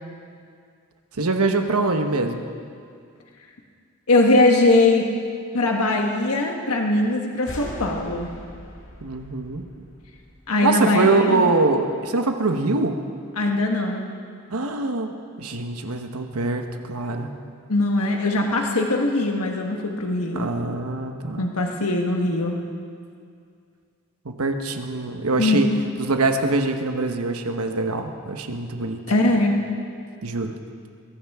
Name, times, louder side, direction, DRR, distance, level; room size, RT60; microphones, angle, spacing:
voice 1, 1.2-2.5 9.0-9.6 10.6-13.0 14.5-17.3 20.3-21.5 24.2-25.7 26.0-29.0 30.2-30.6, right 3 dB, 85° right, 5 dB, 1.2 m, -23 dB
voice 2, 4.1-5.1 5.5-8.3 10.5-11.5 13.4-14.1 17.7-20.5 21.4-22.6 25.4-25.8 29.1-29.6, left 2 dB, 90° left, 1 dB, 1.4 m, -21 dB
sound 1, 7.5-10.9, left 1 dB, 60° left, 2.0 m, -40 dB
22.0 x 16.5 x 3.6 m, 2.3 s
head